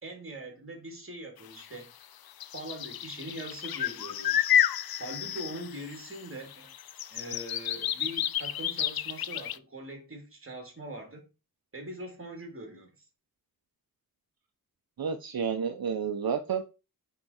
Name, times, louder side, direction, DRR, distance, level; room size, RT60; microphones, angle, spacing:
voice 1, 0.0-1.9 2.5-4.5 5.0-6.7 7.1-11.2 11.7-12.9, right 1 dB, 35° right, 2.8 m, -42 dB
sound 1, 1.6-1.7 2.4-6.2 6.5-9.6, left 10 dB, 80° left, 0.5 m, -30 dB
voice 2, 15.0-16.6, right 6 dB, 75° right, 0.8 m, -30 dB
9.4 x 3.8 x 4.3 m
wide cardioid pair, 95°, 36 cm